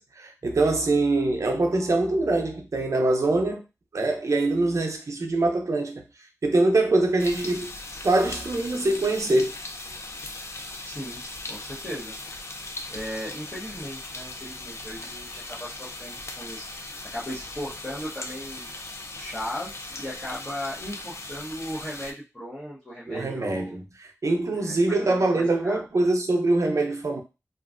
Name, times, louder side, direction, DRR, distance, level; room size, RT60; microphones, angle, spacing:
voice 1, 0.2-3.6 3.9-6.0 6.4-7.7 8.0-9.5 23.1-27.2, right 2 dB, 65° right, 0.6 m, -23 dB
sound 1, 7.2-22.1, left 2 dB, 50° left, 0.4 m, -39 dB
voice 2, 10.8-12.2 12.9-18.7 19.2-23.7 24.6-25.8, equal, 15° left, 1.0 m, -37 dB
3.0 x 2.4 x 2.4 m
wide cardioid pair, 85°, 6 cm